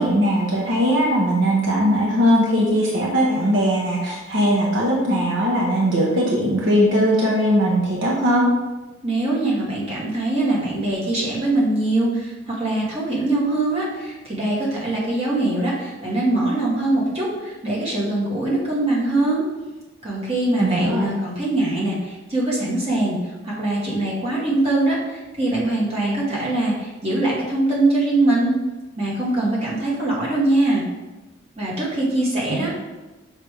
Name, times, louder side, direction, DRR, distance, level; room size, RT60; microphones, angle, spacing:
voice 1, 0.0-8.4 20.6-21.1 32.5-32.7, equal, 75° right, -3 dB, 1.0 m, -19 dB
voice 2, 9.0-19.4 20.0-28.6 29.0-30.8 31.6-32.8, right 2 dB, 30° right, -6 dB, 1.8 m, -22 dB
5.7 x 3.3 x 4.9 m, 1.1 s
head